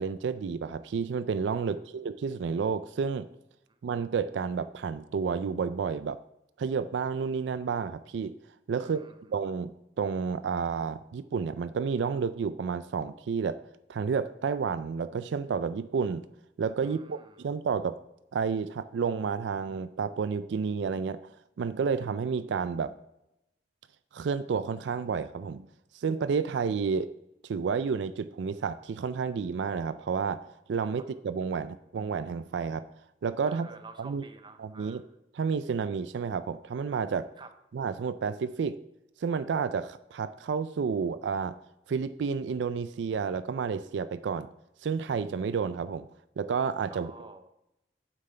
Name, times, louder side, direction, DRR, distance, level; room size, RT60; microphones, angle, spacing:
voice 1, 0.0-3.3 3.8-6.2 6.6-8.3 8.7-9.0 9.3-13.6 13.9-16.2 16.6-18.0 18.3-21.2 21.6-22.9 24.1-25.7 25.9-27.1 27.4-32.8 33.2-33.7 34.0-34.2 34.6-35.0 35.3-37.3 37.7-38.8 39.2-41.6 41.9-44.5 44.8-46.1 46.4-47.1, right 5 dB, 80° right, 14 dB, 0.4 m, -30 dB
voice 2, 8.8-9.3 16.8-17.5 33.4-35.1 37.4-37.5 46.9-47.5, right 3 dB, 25° right, 8 dB, 0.7 m, -50 dB
9.2 x 7.5 x 3.3 m, 0.85 s
head